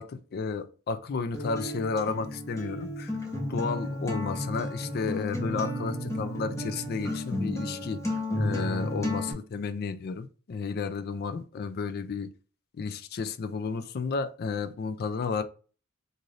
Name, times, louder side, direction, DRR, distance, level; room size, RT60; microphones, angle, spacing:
voice 1, 0.0-3.1 3.5-8.0 8.4-12.3 12.8-15.4, left 5 dB, 45° left, 0.4 m, -32 dB
Acoustic guitar, 1.3-9.3, left 1 dB, 15° left, 0.9 m, -33 dB
2.6 x 2.5 x 3.1 m
head